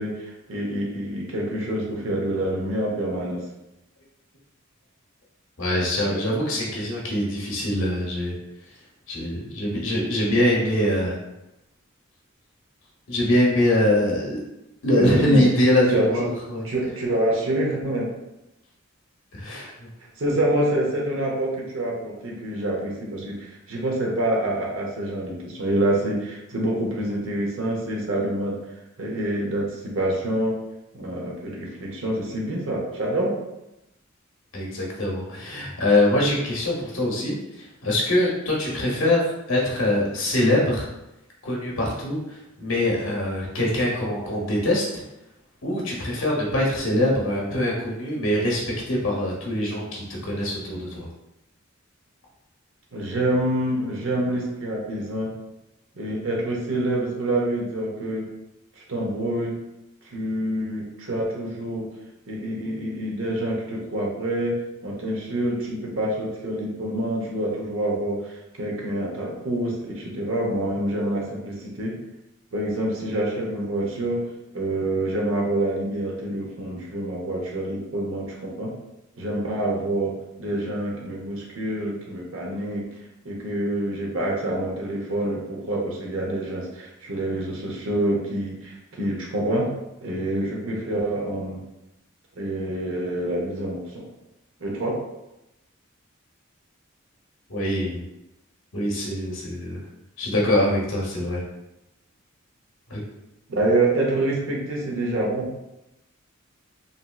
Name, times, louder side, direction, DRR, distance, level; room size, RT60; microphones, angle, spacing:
voice 1, 0.0-3.4 15.0-15.4 15.9-16.3 16.6-18.1 20.2-28.6 29.0-30.5 30.9-33.4 52.9-55.3 56.0-58.2 58.9-59.6 60.0-61.9 62.3-64.5 64.8-72.0 72.5-74.2 74.5-78.7 79.2-82.8 83.2-89.7 90.0-91.6 92.4-94.0 94.6-94.9 103.5-105.5, right 1 dB, 70° right, -2 dB, 0.8 m, -26 dB
voice 2, 5.6-8.4 9.1-11.2 13.1-14.4 14.8-16.6 19.3-19.9 34.5-40.9 41.4-45.0 45.6-48.6 48.9-51.1 97.5-98.0 98.7-99.8 100.2-101.4 102.9-103.0, left 1 dB, 65° left, -3 dB, 0.7 m, -23 dB
3.1 x 2.6 x 2.3 m, 0.91 s
head